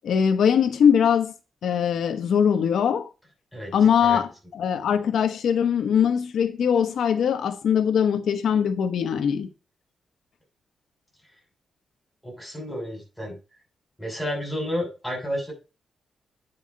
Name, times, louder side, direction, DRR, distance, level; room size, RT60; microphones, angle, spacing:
voice 1, 0.0-1.3 1.6-3.1 3.7-9.5, left 8 dB, 80° left, 0.9 m, -21 dB
voice 2, 12.2-13.4 14.0-15.5, equal, ahead, 6.5 m, -31 dB
9.5 x 5.6 x 5.3 m
wide cardioid pair, 170°, 0 cm